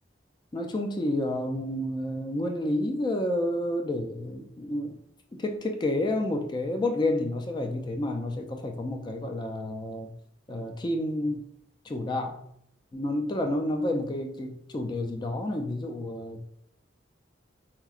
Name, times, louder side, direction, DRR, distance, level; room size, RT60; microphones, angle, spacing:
voice 1, 0.5-5.0 5.3-10.1 10.5-11.4 11.8-12.4 12.9-16.4, left 1 dB, 25° left, 4 dB, 0.3 m, -30 dB
4.6 x 3.0 x 2.4 m, 0.72 s
head